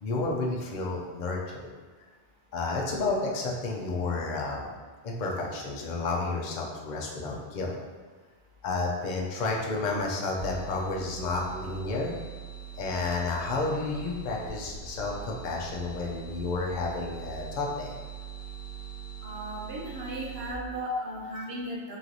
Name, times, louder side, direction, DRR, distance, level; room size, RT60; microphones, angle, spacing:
voice 1, 0.0-1.7 2.5-4.7 5.0-7.7 8.6-12.1 12.8-17.9 20.9-21.0, left 3 dB, 45° left, -1 dB, 0.7 m, -31 dB
sound 1, 10.4-20.5, right 8 dB, 80° right, 1.7 m, -42 dB
voice 2, 19.2-22.0, right 2 dB, 60° right, -2 dB, 0.9 m, -36 dB
3.9 x 3.1 x 3.9 m, 1.4 s
omnidirectional pair, 1.2 m